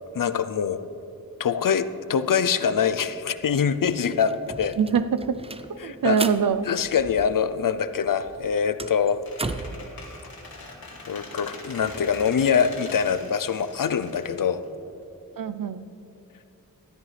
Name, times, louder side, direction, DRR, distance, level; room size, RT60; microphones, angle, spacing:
voice 1, 0.1-0.9 1.4-4.8 5.8-6.2 6.6-9.2 11.1-14.6, left 7 dB, 65° left, 12 dB, 0.5 m, -24 dB
sound 1, 3.4-3.5 3.7-7.7 7.9-9.9, right 3 dB, 15° right, 0.4 m, -36 dB
voice 2, 4.8-5.4 5.7-6.7 15.4-15.8, right 7 dB, 70° right, 13 dB, 0.5 m, -24 dB
Squeak, 9.2-15.0, left 2 dB, 90° left, 2.2 m, -42 dB
15.0 x 12.5 x 3.3 m, 2.8 s
wide cardioid pair, 90°, 35 cm